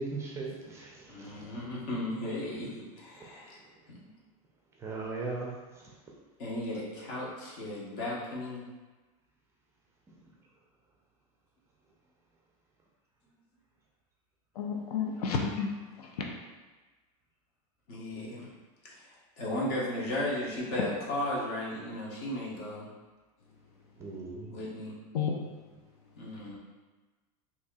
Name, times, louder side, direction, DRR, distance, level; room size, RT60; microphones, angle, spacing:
voice 1, 0.0-1.7 3.2-3.5 4.8-5.9 24.0-24.5, right 3 dB, 15° right, -2 dB, 0.5 m, -39 dB
voice 2, 1.1-3.6 3.9-4.1 6.4-8.6 17.9-18.5 19.4-22.9 24.5-24.9 26.2-26.6, left 1 dB, 55° left, -4 dB, 1.2 m, -35 dB
voice 3, 14.6-15.7 25.1-25.3, left 6 dB, 85° left, 1 dB, 0.6 m, -30 dB
4.1 x 2.9 x 2.4 m, 1.3 s
supercardioid pair, 150°, 19 cm